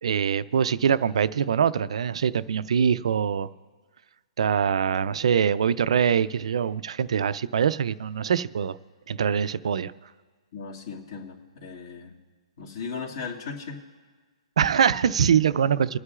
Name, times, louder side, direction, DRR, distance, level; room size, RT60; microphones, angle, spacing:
voice 1, 0.0-3.5 4.4-8.8 9.1-9.9 14.6-16.0, right 7 dB, 70° right, 0.4 m, -23 dB
voice 2, 10.5-12.1 12.6-13.8, left 5 dB, 50° left, 2.1 m, -37 dB
27.0 x 9.7 x 2.4 m
hypercardioid pair, 165°, 3 cm